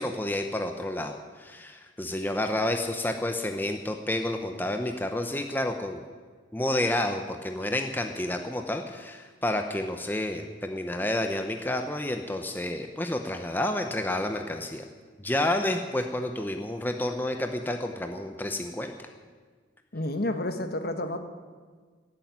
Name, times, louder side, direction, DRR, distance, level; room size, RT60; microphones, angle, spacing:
voice 1, 0.0-6.0 6.5-14.8 15.2-18.9, left 1 dB, 10° left, 5 dB, 0.8 m, -30 dB
voice 2, 19.9-21.2, left 1 dB, 55° left, 8 dB, 1.4 m, -30 dB
17.0 x 8.7 x 9.6 m, 1.5 s
head